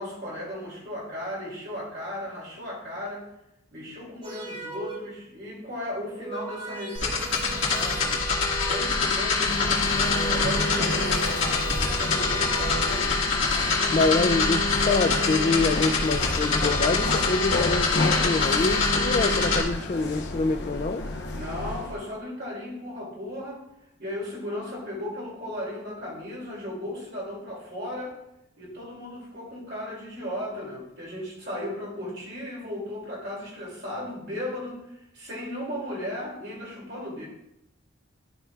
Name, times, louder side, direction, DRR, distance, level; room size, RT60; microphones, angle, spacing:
voice 1, 0.0-3.3 3.7-8.2 8.7-13.1 21.2-23.6 24.0-28.2 28.6-37.3, left 1 dB, 55° right, 2.6 m, -36 dB
sound 1, 4.2-5.3 6.0-9.2 9.9-13.1, right 4 dB, 25° right, 2.4 m, -39 dB
sound 2, 6.9-19.6, left 4 dB, 75° left, 1.8 m, -25 dB
sound 3, 9.4-22.0, left 2 dB, 55° left, 0.9 m, -32 dB
voice 2, 13.9-21.1, left 3 dB, 35° left, 0.3 m, -26 dB
12.5 x 4.5 x 2.4 m
head